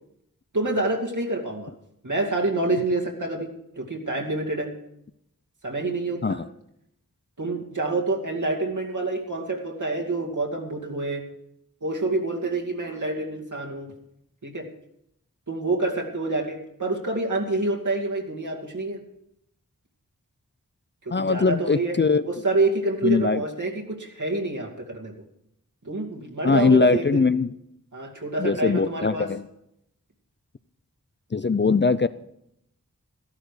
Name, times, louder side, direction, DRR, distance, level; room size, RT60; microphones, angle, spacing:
voice 1, 0.5-1.7 2.0-3.5 3.8-4.7 5.6-6.4 7.4-11.2 11.8-13.9 14.4-14.7 15.5-19.0 21.1-22.0 22.2-25.1 25.8-27.2 27.9-29.3, right 2 dB, 65° right, 0 dB, 2.4 m, -27 dB
voice 2, 21.1-22.4 23.0-23.4 26.4-27.5 28.4-29.4 31.3-32.1, left 4 dB, 35° left, 14 dB, 0.5 m, -21 dB
13.5 x 12.0 x 4.9 m, 0.77 s
wide cardioid pair, 45°, 33 cm